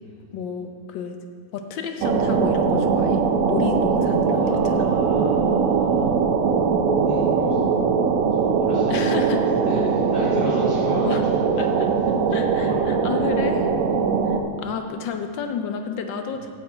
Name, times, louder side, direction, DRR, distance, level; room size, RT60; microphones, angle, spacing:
voice 1, 0.3-1.2 1.5-3.2 3.5-4.8 8.9-9.4 11.0-11.2 11.6-11.9 12.3-13.7 14.3-16.5, left 6 dB, 70° left, 6 dB, 1.3 m, -30 dB
sound 1, 2.0-14.4, right 5 dB, 75° right, 0.8 m, -21 dB
voice 2, 4.3-6.1 7.0-11.7 12.0-12.1 12.4-13.1 16.3-16.4, left 1 dB, 30° left, -11 dB, 2.6 m, -35 dB
8.0 x 5.6 x 7.4 m, 2.1 s
omnidirectional pair, 2.2 m